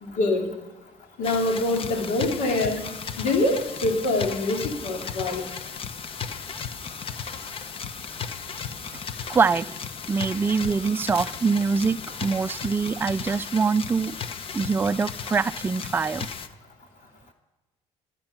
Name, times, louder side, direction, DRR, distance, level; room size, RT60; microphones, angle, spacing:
voice 1, 0.0-0.5 1.2-2.9 3.2-5.4, left 2 dB, 80° left, 3 dB, 2.9 m, -25 dB
sound 1, 1.2-16.5, left 6 dB, 45° left, 1.1 m, -35 dB
voice 2, 9.3-9.8 10.1-14.2 14.5-16.3, right 5 dB, 15° right, 12 dB, 0.4 m, -24 dB
14.5 x 10.5 x 6.1 m, 1.1 s
cardioid pair, 95°, 13 cm